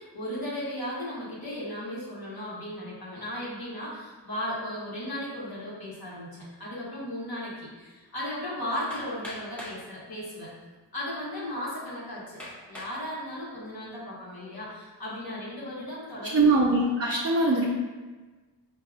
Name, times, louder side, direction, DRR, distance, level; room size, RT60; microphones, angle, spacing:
voice 1, 0.0-10.5 10.9-12.4 12.7-16.6, left 1 dB, 55° left, -7 dB, 1.4 m, -36 dB
Hammer, 8.9-9.8 10.7-10.8 11.4-11.5 12.4-13.0 13.6-14.0, left 1 dB, 5° left, 1.0 m, -42 dB
voice 2, 16.3-17.7, right 2 dB, 35° right, -5 dB, 0.7 m, -22 dB
4.6 x 2.7 x 2.4 m, 1.3 s
cardioid pair, 40°, 44 cm